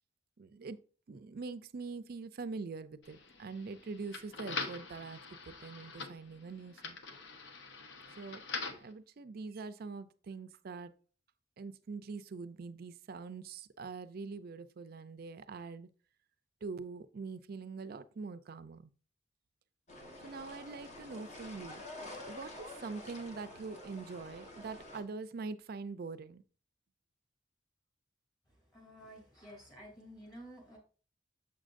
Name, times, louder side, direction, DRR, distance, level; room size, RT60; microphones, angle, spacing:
voice 1, 0.4-0.8 1.1-7.0 8.1-8.4 8.8-10.9 11.6-15.9 16.6-18.9 20.2-21.8 22.3-26.4, right 4 dB, 55° right, 12 dB, 0.4 m, -44 dB
sound 1, 3.0-8.9, left 4 dB, 75° left, 0.9 m, -44 dB
sound 2, 19.9-25.0, left 1 dB, 40° left, 1.1 m, -48 dB
voice 2, 28.7-30.8, equal, 25° left, -1 dB, 2.6 m, -52 dB
6.9 x 6.3 x 2.5 m, 0.39 s
head